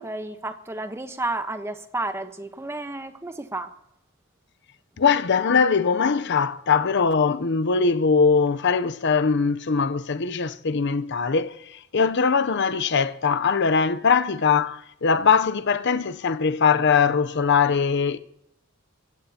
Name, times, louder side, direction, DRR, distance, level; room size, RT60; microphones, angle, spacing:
voice 1, 0.0-3.7, right 2 dB, 10° right, 1.0 m, -31 dB
voice 2, 5.0-18.2, left 5 dB, 55° left, 0.7 m, -21 dB
23.0 x 15.5 x 2.9 m
head